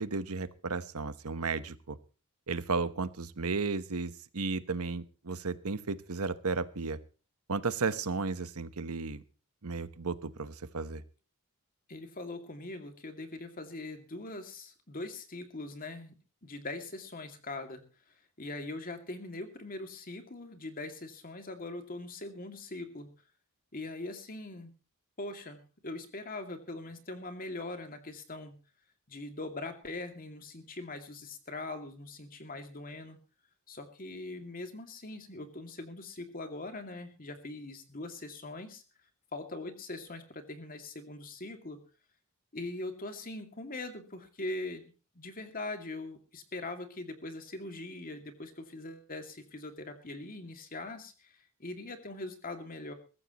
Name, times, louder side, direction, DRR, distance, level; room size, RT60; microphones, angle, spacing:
voice 1, 0.0-2.0 2.5-7.0 7.5-9.2 9.6-11.0, right 4 dB, 85° right, 13 dB, 1.1 m, -34 dB
voice 2, 11.9-16.1 16.4-17.9 18.4-23.1 23.7-24.7 25.2-28.5 29.1-33.2 33.7-38.8 39.3-41.8 42.5-52.9, left 2 dB, 40° left, 6 dB, 2.4 m, -41 dB
22.5 x 14.0 x 3.0 m, 0.35 s
head